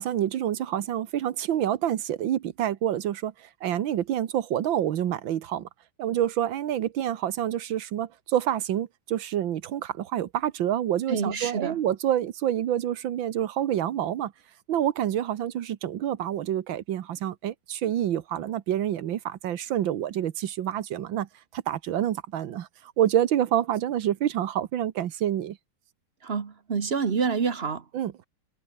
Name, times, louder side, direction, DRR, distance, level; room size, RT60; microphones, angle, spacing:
voice 1, 0.0-5.7 6.0-14.3 14.7-25.6 27.9-28.3, right 11 dB, 90° right, 1.8 m, -27 dB
voice 2, 11.1-11.8 26.2-27.8, right 5 dB, 35° right, 1.3 m, -27 dB
omnidirectional pair, 2.0 m